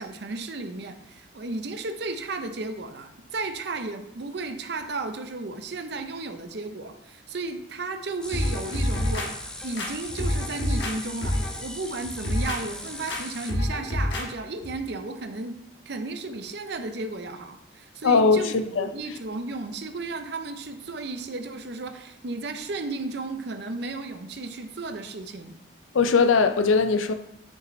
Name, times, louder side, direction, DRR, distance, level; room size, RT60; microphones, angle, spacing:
voice 1, 0.0-25.6, right 3 dB, 55° right, 0.6 m, -34 dB
sound 1, 8.2-13.5, left 1 dB, 5° left, 0.4 m, -39 dB
sound 2, 8.3-9.3 9.8-10.9 11.2-11.6 12.0-12.6 13.1-13.2 13.5-14.3 14.6-14.7, left 1 dB, 65° left, 1.2 m, -27 dB
voice 2, 18.0-18.9 25.9-27.1, left 4 dB, 85° left, 0.5 m, -20 dB
6.0 x 5.1 x 3.1 m
head